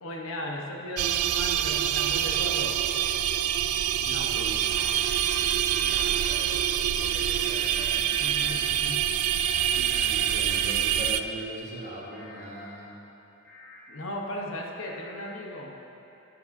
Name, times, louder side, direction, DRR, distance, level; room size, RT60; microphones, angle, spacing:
voice 1, 0.0-3.3 4.0-5.1 5.8-5.9 8.1-9.1 9.7-10.1 13.9-15.7, left 1 dB, 70° left, 0 dB, 1.0 m, -37 dB
sound 1, 1.0-11.2, right 10 dB, 85° right, 0.3 m, -26 dB
sound 2, 4.7-6.0 7.0-8.4 9.4-10.7 12.1-12.5 13.4-13.8 14.8-15.1, left 2 dB, 5° left, 1.9 m, -48 dB
voice 2, 5.8-8.1 9.7-12.9, right 1 dB, 35° right, -5 dB, 1.4 m, -41 dB
13.0 x 8.4 x 2.6 m, 2.9 s
head